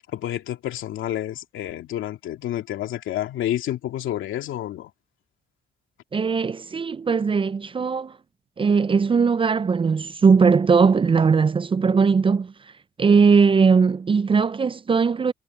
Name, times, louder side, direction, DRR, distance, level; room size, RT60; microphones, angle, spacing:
voice 1, 0.1-4.9, left 12 dB, 80° left, 2.5 m, -29 dB
voice 2, 6.1-8.1 8.6-12.5 13.0-15.3, right 5 dB, 25° right, 0.4 m, -19 dB
cardioid pair, 90°, 20 cm